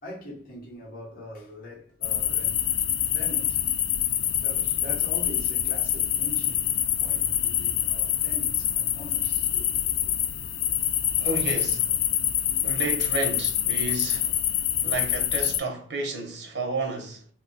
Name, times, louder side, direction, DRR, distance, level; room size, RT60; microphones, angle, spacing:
voice 1, 0.0-2.7 3.1-3.6 4.4-9.9, left 1 dB, 55° left, 1.1 m, -42 dB
sound 1, 2.0-15.6, left 11 dB, 75° left, 0.3 m, -26 dB
voice 2, 11.2-12.0 12.6-14.5 14.8-17.3, right 2 dB, 75° right, 0.8 m, -32 dB
2.3 x 2.3 x 3.8 m
head